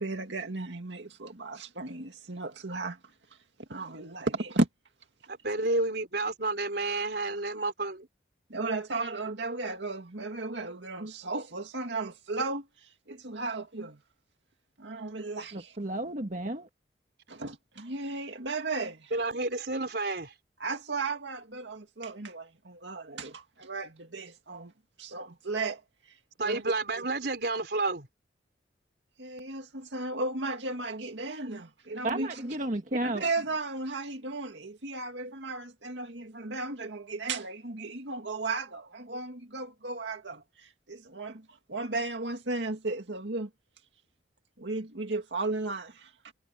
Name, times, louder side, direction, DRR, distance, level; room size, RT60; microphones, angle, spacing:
voice 1, 0.0-3.0 3.7-4.7 8.5-14.0 14.8-15.7 17.3-19.1 20.6-24.7 25.0-25.8 26.4-26.6 27.0-27.1 29.2-32.4 33.0-43.5 44.6-46.3, right 3 dB, 90° right, 2.2 m, -35 dB
voice 2, 5.3-8.1 19.1-20.3 26.4-28.1, right 2 dB, 65° right, 3.7 m, -30 dB
voice 3, 15.5-16.7 32.0-33.3, right 1 dB, 45° right, 1.7 m, -32 dB
head